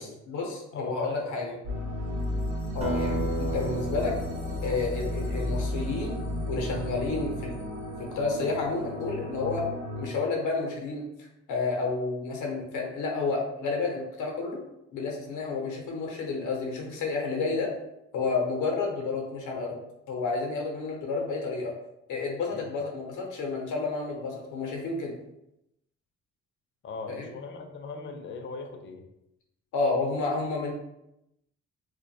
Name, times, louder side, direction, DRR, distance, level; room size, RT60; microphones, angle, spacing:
voice 1, 0.0-1.5 2.7-4.1 4.6-7.5 8.1-9.6 10.0-11.1 11.5-14.6 14.9-17.7 18.1-19.8 20.1-21.7 22.1-25.1 27.1-27.3 29.7-30.7, left 4 dB, 80° left, 0 dB, 0.7 m, -30 dB
voice 2, 0.7-1.6 22.5-22.6 26.8-29.0, left 4 dB, 40° left, 4 dB, 0.4 m, -39 dB
sound 1, 1.6-10.1, left 1 dB, 75° right, 0.8 m, -33 dB
Acoustic guitar, 2.8-7.6, right 1 dB, 20° right, 0.5 m, -36 dB
2.2 x 2.2 x 2.6 m, 0.84 s
cardioid pair, 90°, 30 cm